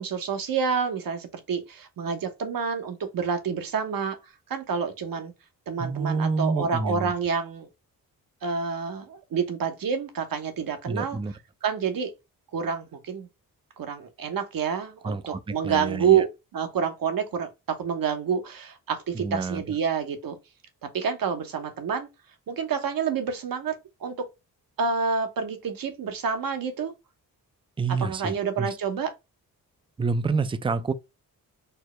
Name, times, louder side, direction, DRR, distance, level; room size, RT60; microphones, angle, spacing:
voice 1, 0.0-5.3 5.7-7.7 8.4-11.2 11.6-12.1 12.5-13.3 13.8-20.4 20.9-22.1 22.5-23.7 24.0-24.2 24.8-26.9 28.0-29.1, right 6 dB, 65° right, 0.9 m, -28 dB
voice 2, 5.8-7.1 10.9-11.3 15.0-16.2 19.1-19.6 27.8-28.7 30.0-30.9, right 4 dB, 15° right, 0.4 m, -28 dB
4.5 x 2.0 x 3.1 m
cardioid pair, 70°, 36 cm